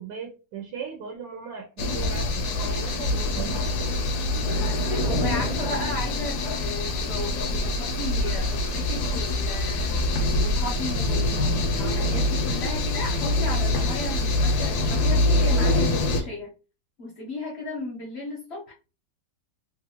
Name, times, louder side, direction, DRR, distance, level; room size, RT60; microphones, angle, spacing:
voice 1, 0.0-3.6, right 6 dB, 80° right, 1 dB, 1.3 m, -37 dB
sound 1, 1.8-16.2, left 2 dB, 70° left, 1.0 m, -25 dB
voice 2, 4.7-16.5 17.0-18.7, left 2 dB, 55° left, -1 dB, 0.7 m, -35 dB
3.1 x 2.5 x 2.9 m, 0.32 s
omnidirectional pair, 1.9 m